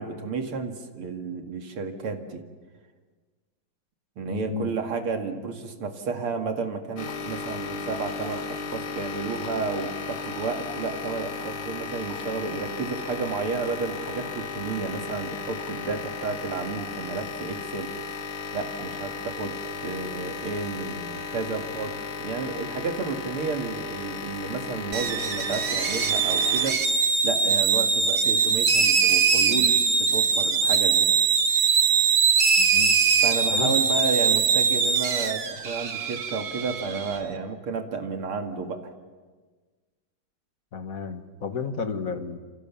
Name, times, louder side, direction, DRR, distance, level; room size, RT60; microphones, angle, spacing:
voice 1, 0.0-2.4 4.2-17.9 18.5-21.9 22.2-26.8 27.2-31.1 33.2-38.9, right 4 dB, 85° right, 5 dB, 3.0 m, -32 dB
voice 2, 4.3-4.8 32.6-33.0 33.5-33.7 40.7-42.4, left 5 dB, 45° left, 7 dB, 1.9 m, -32 dB
sound 1, 7.0-26.7, left 5 dB, 85° left, 3.0 m, -35 dB
sound 2, 24.9-37.2, right 6 dB, 50° right, 1.8 m, -22 dB
28.5 x 28.0 x 7.1 m, 1.4 s
omnidirectional pair, 2.3 m